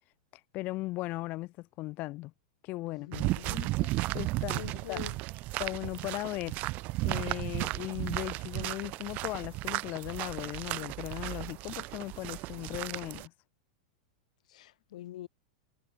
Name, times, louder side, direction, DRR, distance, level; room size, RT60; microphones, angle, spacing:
voice 1, 0.5-2.3 2.6-3.1 3.5-4.6 4.9-5.0 5.6-6.6 7.0-13.3, left 20 dB, 45° left, 4.9 m, -37 dB
voice 2, 2.8-3.7 4.6-5.2 14.5-15.3, left 14 dB, 70° left, 3.0 m, -44 dB
sound 1, 3.1-13.3, right 21 dB, 45° right, 0.4 m, -34 dB
hypercardioid pair, 115°, 4 cm